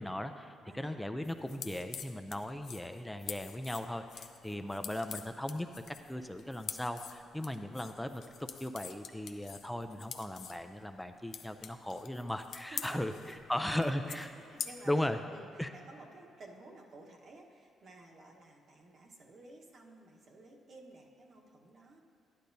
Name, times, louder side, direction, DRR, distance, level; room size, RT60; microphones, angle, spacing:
voice 1, 0.0-8.2 8.6-13.1 13.5-14.3 14.9-15.2 15.6-15.7, left 1 dB, 5° left, 7 dB, 0.4 m, -37 dB
voice 2, 0.6-1.2 4.5-4.7 12.7-13.8 14.1-22.0, right 2 dB, 55° right, 0 dB, 1.1 m, -53 dB
sound 1, 1.2-15.1, left 7 dB, 70° left, 0.5 m, -47 dB
11.5 x 10.0 x 2.7 m, 2.8 s
cardioid pair, 90°, 0 cm